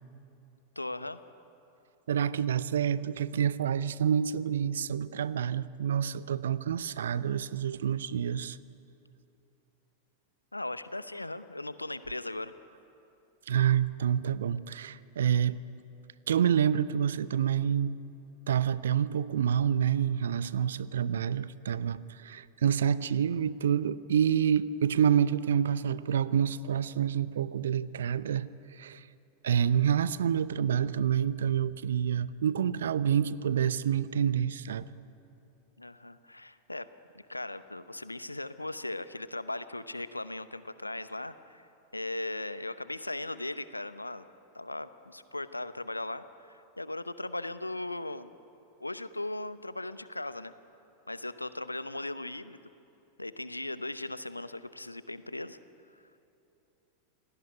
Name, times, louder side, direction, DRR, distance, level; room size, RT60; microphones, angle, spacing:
voice 1, 0.8-1.2 10.5-12.5 35.8-36.9 37.1-44.3 44.5-48.3 48.8-50.5 51.1-52.6 53.2-55.6 55.9-56.0, left 2 dB, 85° left, 14 dB, 0.8 m, -38 dB
voice 2, 2.1-8.6 13.5-15.6 16.3-18.0 18.5-29.0 29.4-34.9, right 8 dB, 65° right, 18 dB, 0.7 m, -28 dB
28.0 x 18.5 x 9.6 m, 2.9 s
figure-of-eight pair, 90°, 0 cm